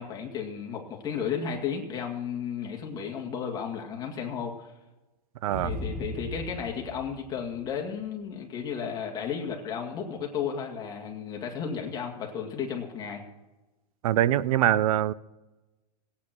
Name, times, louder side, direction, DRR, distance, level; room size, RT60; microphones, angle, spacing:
voice 1, 0.0-4.7 5.6-13.2, left 7 dB, 20° left, 2.1 m, -33 dB
voice 2, 5.4-5.7 14.0-15.1, right 12 dB, 55° right, 0.6 m, -23 dB
sound 1, 5.5-8.0, left 1 dB, 85° right, 4.6 m, -37 dB
17.0 x 8.7 x 6.0 m
hypercardioid pair, 155°, 21 cm